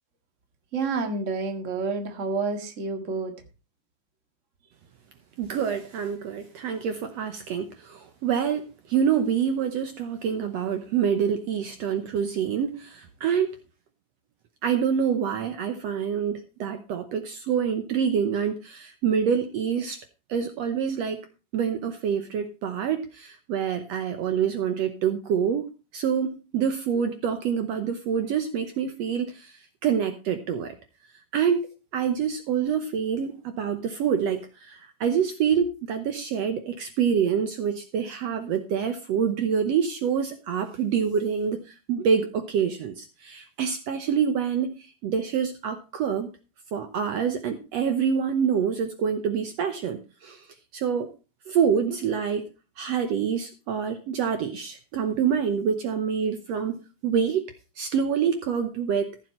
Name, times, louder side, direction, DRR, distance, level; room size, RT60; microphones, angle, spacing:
voice 1, 0.7-3.3, right 4 dB, 30° right, 6 dB, 1.7 m, -29 dB
voice 2, 5.4-13.6 14.6-20.0 20.3-21.2 21.5-25.7 25.9-29.5 29.8-30.8 31.3-31.7 31.9-44.7 45.0-46.3 46.7-50.4 50.7-51.1 51.5-52.5 52.8-57.5 57.8-59.1, right 7 dB, 65° right, 8 dB, 1.9 m, -26 dB
15.0 x 7.3 x 4.4 m, 0.31 s
omnidirectional pair, 3.5 m